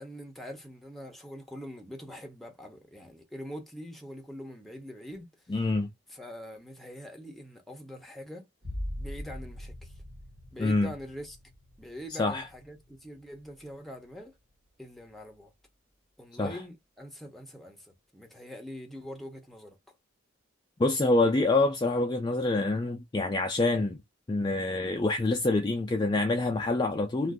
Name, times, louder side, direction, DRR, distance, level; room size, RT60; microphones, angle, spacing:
voice 1, 0.0-5.7 6.1-8.5 9.0-10.0 10.5-11.4 11.8-14.4 14.8-15.5 16.2-19.8, equal, ahead, 0.7 m, -44 dB
voice 2, 5.5-5.9 10.6-10.9 12.2-12.5 16.4-16.6 20.8-24.0 24.3-27.3, left 2 dB, 20° left, 0.3 m, -26 dB
sound 1, 8.6-14.1 14.5-15.1, left 1 dB, 75° right, 1.4 m, -42 dB
2.5 x 2.4 x 3.5 m
head